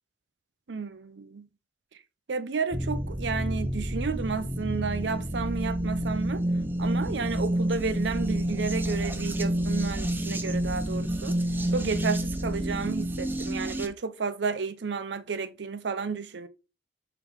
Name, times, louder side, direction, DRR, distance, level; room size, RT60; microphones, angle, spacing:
voice 1, 0.7-1.5 2.3-6.4 6.8-11.4 11.7-16.5, right 4 dB, 80° right, 0.6 m, -32 dB
sound 1, 2.7-13.9, right 1 dB, 10° right, 0.7 m, -29 dB
7.0 x 4.1 x 3.5 m
head